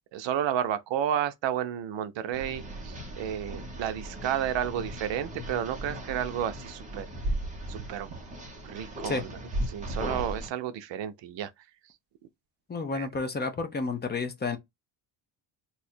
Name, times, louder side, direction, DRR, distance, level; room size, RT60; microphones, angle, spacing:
voice 1, 0.1-7.1 7.7-8.2 8.6-9.3 9.7-11.5 12.9-13.1, right 10 dB, 65° right, 0.6 m, -31 dB
sound 1, 2.3-10.5, right 1 dB, 15° right, 0.8 m, -37 dB
voice 2, 12.7-14.6, left 4 dB, 20° left, 0.5 m, -31 dB
2.8 x 2.4 x 4.2 m
cardioid pair, 165°, 47 cm